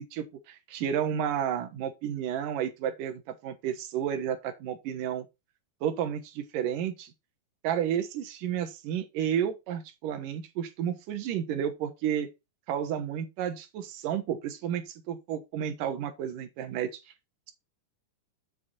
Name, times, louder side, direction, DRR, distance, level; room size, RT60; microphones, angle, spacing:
voice 1, 0.0-5.3 5.8-7.1 7.6-12.3 12.7-17.0, right 9 dB, 70° right, 2.7 m, -31 dB
7.9 x 5.8 x 4.2 m
omnidirectional pair, 4.1 m